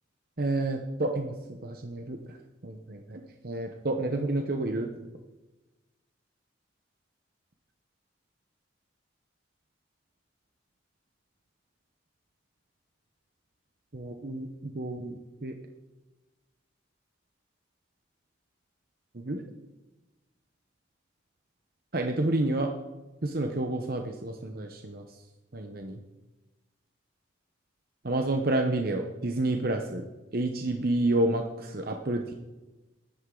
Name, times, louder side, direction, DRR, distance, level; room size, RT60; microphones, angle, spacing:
voice 1, 0.4-1.4 1.6-2.4 2.6-4.9 13.9-15.2 15.4-15.5 19.1-19.4 21.9-22.7 23.2-25.0 25.5-26.0 28.0-30.0 30.3-32.3, right 2 dB, 50° right, 4 dB, 0.9 m, -29 dB
15.5 x 11.5 x 3.8 m, 1.1 s
head